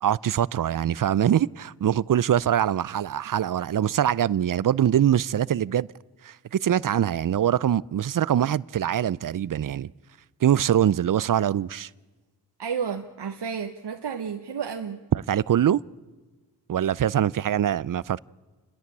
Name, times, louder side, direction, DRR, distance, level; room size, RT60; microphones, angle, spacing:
voice 1, 0.0-5.9 6.2-9.9 10.4-11.9 15.1-15.8 16.7-18.2, right 10 dB, 55° right, 0.5 m, -23 dB
voice 2, 12.6-15.0, right 6 dB, 75° right, 1.1 m, -31 dB
29.5 x 11.0 x 8.5 m
cardioid pair, 50°, 41 cm